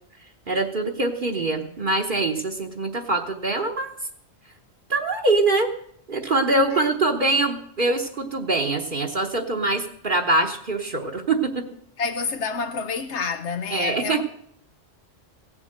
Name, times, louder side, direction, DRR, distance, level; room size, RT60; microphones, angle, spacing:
voice 1, 0.5-3.9 4.9-5.7 6.1-11.6 13.7-14.2, right 2 dB, 50° right, 1.2 m, -23 dB
voice 2, 12.0-14.2, left 5 dB, 80° left, 1.1 m, -29 dB
16.5 x 7.3 x 7.8 m
omnidirectional pair, 1.1 m